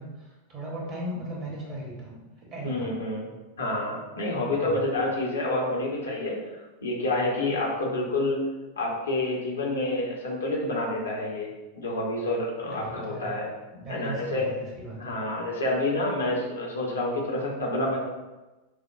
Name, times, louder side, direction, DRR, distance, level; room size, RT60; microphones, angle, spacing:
voice 1, 0.0-2.9 4.5-4.8 6.0-6.1 12.6-13.3 13.7-15.2, right 1 dB, 35° right, -3 dB, 1.3 m, -38 dB
voice 2, 2.6-3.3 3.6-6.4 6.8-8.4 8.8-11.5 11.8-13.5 13.9-14.5 15.0-18.0, left 2 dB, 70° left, -3 dB, 0.9 m, -28 dB
6.2 x 2.2 x 2.3 m, 1.1 s
figure-of-eight pair, 90°, 0 cm